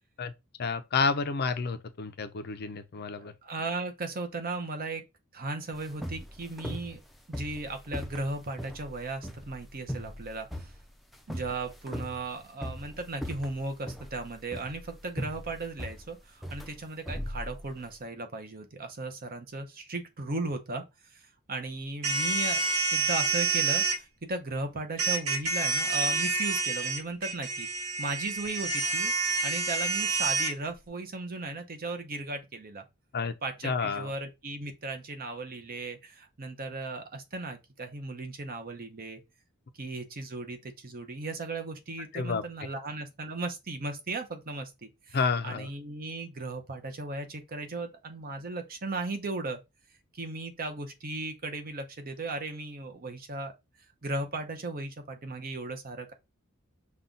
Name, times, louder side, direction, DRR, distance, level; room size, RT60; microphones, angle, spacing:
voice 1, 0.6-3.3 33.1-33.3 33.6-34.1 42.1-42.4 45.1-45.7, left 4 dB, 50° left, 0.5 m, -30 dB
voice 2, 3.2-5.0 5.3-7.0 7.3-10.7 11.3-20.8 21.1-21.2 21.5-22.6 22.9-27.7 28.0-29.1 29.4-32.9 33.4-39.2 39.8-45.2 45.4-49.6 50.1-53.5 54.0-56.1, right 2 dB, 45° right, 0.8 m, -36 dB
sound 1, 5.7-18.0, equal, ahead, 0.5 m, -39 dB
sound 2, 22.0-24.0 25.0-30.5, right 3 dB, 90° right, 1.3 m, -28 dB
5.5 x 2.3 x 3.8 m
head